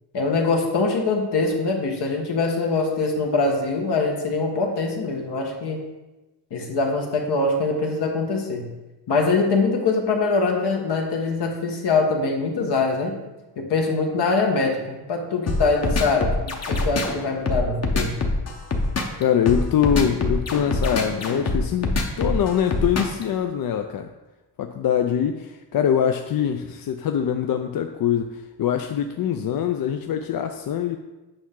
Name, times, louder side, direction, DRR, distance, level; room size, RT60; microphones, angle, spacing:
voice 1, 0.1-5.8 6.5-8.7 9.1-13.2 13.6-18.2, left 3 dB, 75° left, 2 dB, 1.5 m, -23 dB
sound 1, 15.5-23.2, left 2 dB, 40° left, 1.0 m, -24 dB
voice 2, 19.2-24.1 24.6-31.0, left 8 dB, 55° left, 6 dB, 0.5 m, -23 dB
8.9 x 5.7 x 3.7 m, 1.1 s
wide cardioid pair, 125°, 41 cm